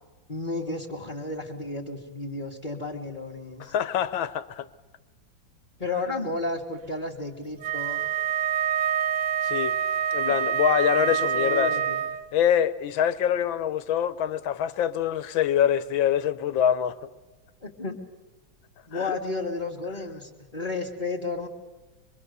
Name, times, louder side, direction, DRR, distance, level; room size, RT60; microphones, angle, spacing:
voice 1, 0.3-3.7 5.8-8.0 10.2-10.3 11.0-12.0 17.6-18.0 18.9-21.5, left 2 dB, 25° left, 2.1 m, -33 dB
voice 2, 3.6-4.7 9.4-9.7 10.1-11.7 12.3-17.0 18.9-19.2, left 9 dB, 80° left, 1.7 m, -25 dB
Wind instrument woodwind instrument, 7.6-12.3, right 9 dB, 45° right, 1.3 m, -26 dB
25.5 x 23.5 x 6.9 m
omnidirectional pair, 2.1 m